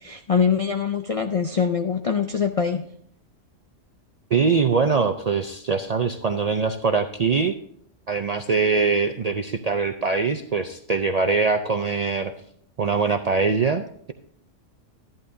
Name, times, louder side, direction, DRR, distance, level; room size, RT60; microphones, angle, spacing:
voice 1, 0.0-2.8, left 6 dB, 60° left, 6 dB, 0.3 m, -23 dB
voice 2, 4.3-7.6 8.1-12.3 12.8-14.1, right 5 dB, 55° right, 6 dB, 0.4 m, -22 dB
13.5 x 11.0 x 2.6 m, 0.66 s
omnidirectional pair, 1.3 m